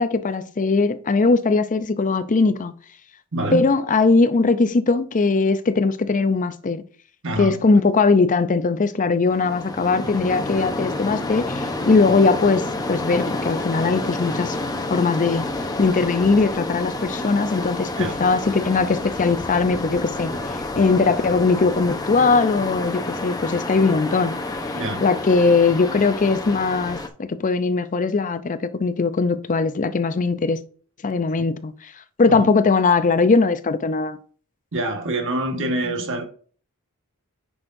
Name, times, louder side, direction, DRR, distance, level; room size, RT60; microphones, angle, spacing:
voice 1, 0.0-2.7 3.5-6.8 7.4-14.6 14.9-15.5 15.8-24.3 25.0-30.6 31.0-31.7 32.2-34.2 35.6-36.0, left 4 dB, 35° left, 0.5 m, -20 dB
voice 2, 3.3-3.6 7.2-7.6 18.0-18.2 24.7-25.0 32.3-32.5 34.7-36.2, right 1 dB, 60° right, 1.5 m, -26 dB
sound 1, 9.3-27.1, left 2 dB, 15° left, 0.9 m, -29 dB
9.7 x 6.2 x 2.6 m
head